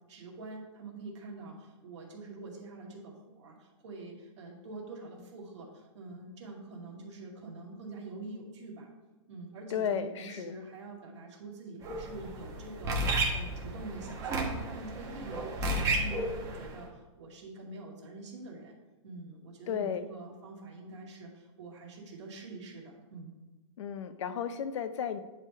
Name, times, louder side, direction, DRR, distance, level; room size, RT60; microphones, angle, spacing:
voice 1, 0.1-8.9 9.3-18.7 19.0-23.3, right 3 dB, 60° right, -1 dB, 2.2 m, -45 dB
voice 2, 9.7-10.6 19.7-20.0 23.8-25.2, left 8 dB, 65° left, 11 dB, 0.6 m, -33 dB
sound 1, 11.8-16.7, right 1 dB, 20° right, 1.1 m, -33 dB
9.8 x 3.4 x 4.6 m, 1.2 s
hypercardioid pair, 160°, 17 cm